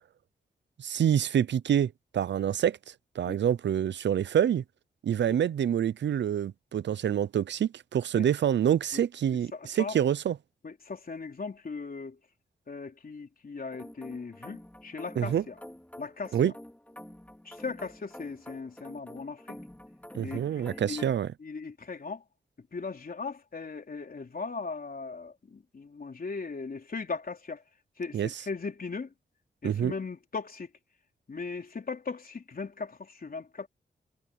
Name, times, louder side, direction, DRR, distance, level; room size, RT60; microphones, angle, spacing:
voice 1, 0.8-2.8 3.2-4.6 5.0-10.4 15.2-15.4 16.3-16.5 20.1-21.3 28.1-28.3 29.6-29.9, right 9 dB, 80° right, 0.6 m, -26 dB
voice 2, 9.5-10.0 10.6-12.2 12.7-15.5 16.0-16.5 17.4-19.6 20.2-21.1 21.4-22.2 22.7-27.6 28.0-29.1 29.6-30.7 31.3-33.7, left 4 dB, 55° left, 4.0 m, -38 dB
sound 1, 13.7-21.1, left 1 dB, 10° left, 4.0 m, -48 dB
cardioid pair, 60°, 18 cm